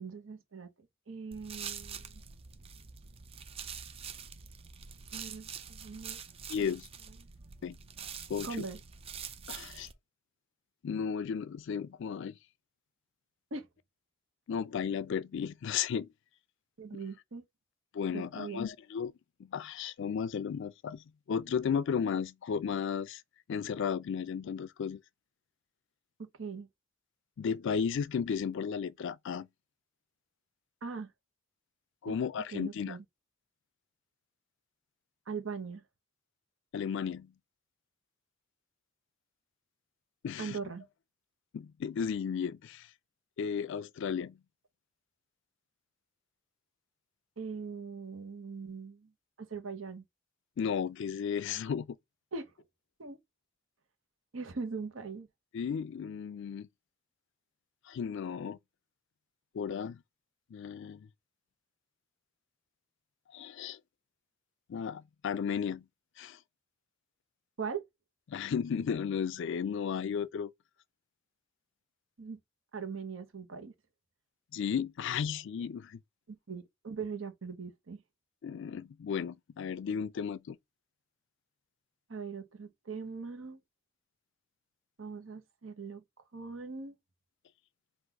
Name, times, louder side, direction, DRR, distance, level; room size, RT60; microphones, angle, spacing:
voice 1, 0.0-2.2 5.1-6.2 6.6-6.7 8.4-8.8 13.5-13.7 16.8-17.4 18.1-18.6 26.2-26.7 30.8-31.1 32.0-32.2 32.5-33.0 35.3-35.8 40.4-40.9 47.4-49.1 49.4-50.0 52.3-52.5 53.0-53.2 54.3-55.3 67.6-67.8 72.2-72.4 72.7-73.7 76.3-78.0 82.1-83.6 85.0-86.0 86.3-87.0, right 5 dB, 75° right, 0.9 m, -41 dB
sound 1, 1.3-9.9, right 7 dB, 30° right, 0.4 m, -45 dB
voice 2, 6.5-6.9 7.6-7.8 8.3-8.6 9.5-9.9 10.8-12.4 14.5-16.1 17.9-19.1 19.4-23.2 23.5-25.0 27.4-29.5 32.0-33.0 36.7-37.3 40.2-40.6 41.5-42.9 43.4-44.4 50.6-51.9 55.5-56.7 57.9-58.6 59.5-60.0 60.5-61.1 63.3-63.8 64.7-65.8 66.2-66.4 68.3-70.5 74.5-76.0 78.4-80.6, left 7 dB, 65° left, 0.3 m, -34 dB
3.9 x 2.5 x 4.6 m
head